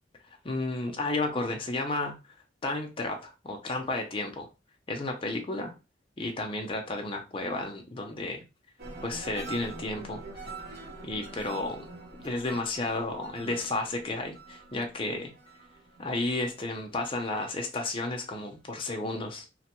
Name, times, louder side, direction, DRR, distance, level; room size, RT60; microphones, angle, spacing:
voice 1, 0.4-2.2 2.6-4.5 4.9-5.7 6.2-8.4 9.0-10.5 11.0-11.8 12.2-15.3 16.0-19.4, left 2 dB, 30° left, 3 dB, 0.5 m, -32 dB
sound 1, 8.8-17.6 18.0-18.5, right 2 dB, 60° right, 0.9 m, -45 dB
3.0 x 2.2 x 2.9 m, 0.27 s
head